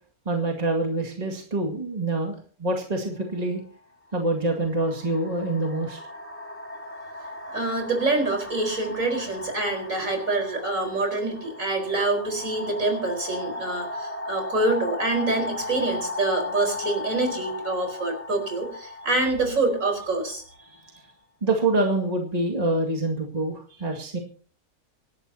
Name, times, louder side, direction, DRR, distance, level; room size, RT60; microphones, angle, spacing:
voice 1, 0.3-3.6 4.1-6.0 20.6-21.1 21.4-24.2, right 2 dB, 25° right, 0 dB, 2.2 m, -26 dB
sound 1, 3.2-3.4 4.3-21.0, left 2 dB, 10° left, 1.9 m, -36 dB
voice 2, 7.5-20.4, right 2 dB, 60° right, 4 dB, 5.1 m, -26 dB
26.5 x 12.0 x 2.8 m, 0.43 s
omnidirectional pair, 1.6 m